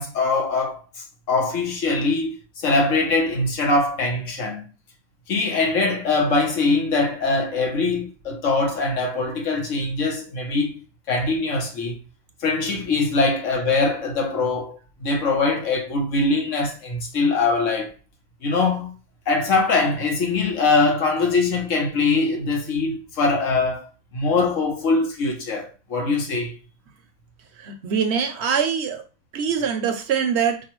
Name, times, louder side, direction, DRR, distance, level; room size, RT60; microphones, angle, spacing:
voice 1, 0.0-4.7 5.3-10.8 11.1-12.0 12.4-17.9 18.4-18.9 19.3-26.5, left 3 dB, 90° left, 1.3 m, -22 dB
voice 2, 27.6-29.0 29.3-30.6, right 7 dB, 70° right, 0.8 m, -23 dB
4.6 x 2.2 x 3.0 m
omnidirectional pair, 1.3 m